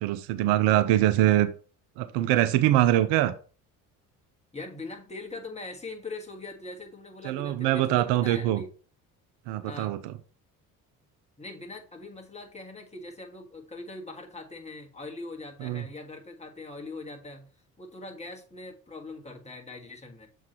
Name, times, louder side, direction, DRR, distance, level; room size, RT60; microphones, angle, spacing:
voice 1, 0.0-1.5 2.0-3.3 7.2-8.6 9.5-10.1 15.6-15.8, right 13 dB, 65° right, 13 dB, 0.6 m, -23 dB
voice 2, 4.5-8.7 9.6-9.9 11.4-17.5 17.8-20.3, left 2 dB, 15° left, 1 dB, 1.7 m, -41 dB
6.9 x 4.6 x 3.1 m, 0.38 s
hypercardioid pair, 55°, 45 cm